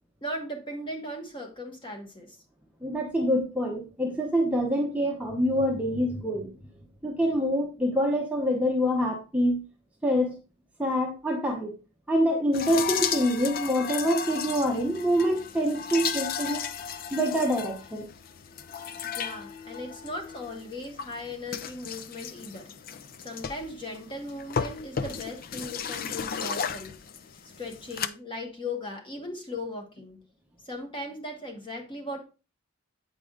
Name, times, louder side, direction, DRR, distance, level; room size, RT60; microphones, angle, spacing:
voice 1, 0.2-2.4 19.1-26.9 27.6-30.2 30.6-32.2, left 1 dB, 20° left, 3 dB, 1.3 m, -38 dB
voice 2, 2.8-6.5 7.0-9.6 10.0-10.4 10.8-11.7 12.1-16.6 17.1-18.1, equal, 5° right, -1 dB, 0.8 m, -26 dB
sound 1, 12.5-28.1, left 7 dB, 40° left, 0.4 m, -35 dB
8.1 x 4.8 x 3.7 m, 0.33 s
head